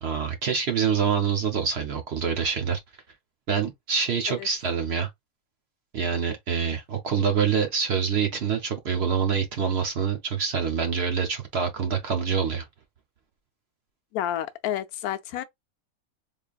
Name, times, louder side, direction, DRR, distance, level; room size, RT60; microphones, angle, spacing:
voice 1, 0.0-2.8 3.5-5.1 5.9-12.6, right 6 dB, 55° right, 0.9 m, -26 dB
voice 2, 14.1-15.4, left 11 dB, 90° left, 1.1 m, -30 dB
3.7 x 3.3 x 2.3 m
omnidirectional pair, 1.5 m